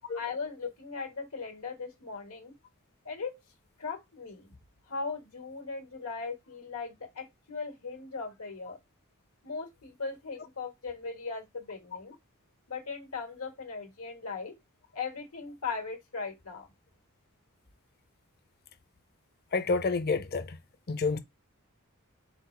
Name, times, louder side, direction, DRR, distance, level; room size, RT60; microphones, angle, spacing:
voice 1, 0.1-2.5 3.0-3.4 3.8-4.5 4.9-8.8 9.4-12.1 12.7-14.5 14.9-16.7, left 4 dB, 90° left, 1.6 m, -38 dB
voice 2, 19.5-20.6 20.9-21.2, left 4 dB, 45° left, 0.6 m, -28 dB
4.0 x 3.9 x 3.2 m
head